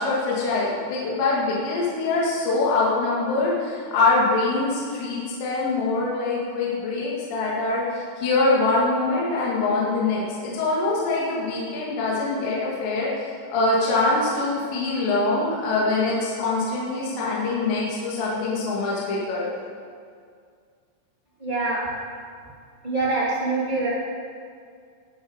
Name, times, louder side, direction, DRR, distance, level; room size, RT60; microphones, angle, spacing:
voice 1, 0.0-19.5, left 3 dB, 65° left, -6 dB, 4.1 m, -24 dB
voice 2, 21.4-21.8 22.8-23.9, right 3 dB, 40° right, -8 dB, 0.6 m, -24 dB
19.0 x 7.3 x 6.4 m, 2.2 s
omnidirectional pair, 6.0 m